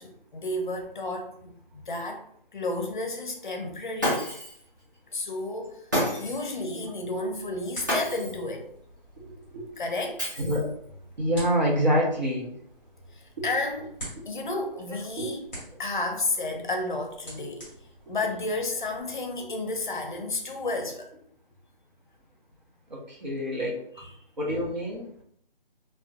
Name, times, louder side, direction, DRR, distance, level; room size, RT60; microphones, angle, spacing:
voice 1, 0.0-2.2 2.5-4.3 5.1-5.8 6.2-8.7 9.8-10.2 13.1-14.0 14.3-15.5 15.8-17.7 18.1-21.1 24.0-24.2, left 2 dB, 55° left, 0.5 m, -32 dB
Shatter, 4.0-4.6 5.9-6.5 7.9-8.5 10.2-10.8, equal, 20° right, 0.5 m, -29 dB
sound 1, 6.9-19.0, right 1 dB, 5° left, 1.2 m, -48 dB
voice 2, 11.2-12.5 15.2-15.3 22.9-23.8 24.4-25.1, equal, 50° right, 0.9 m, -26 dB
2.4 x 2.2 x 2.4 m
figure-of-eight pair, 165°, 29 cm